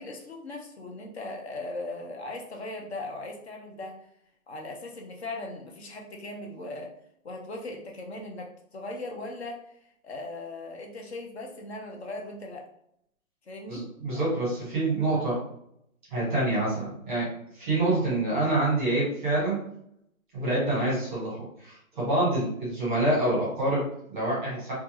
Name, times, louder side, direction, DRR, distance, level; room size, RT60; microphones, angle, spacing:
voice 1, 0.0-4.0 4.5-6.9 7.2-9.7 10.0-12.7 13.5-13.9, left 2 dB, 50° left, 1 dB, 0.6 m, -38 dB
voice 2, 13.7-15.4 16.1-19.6 20.3-24.7, right 2 dB, 10° right, -6 dB, 0.9 m, -27 dB
2.4 x 2.3 x 2.8 m, 0.73 s
hypercardioid pair, 180°, 42 cm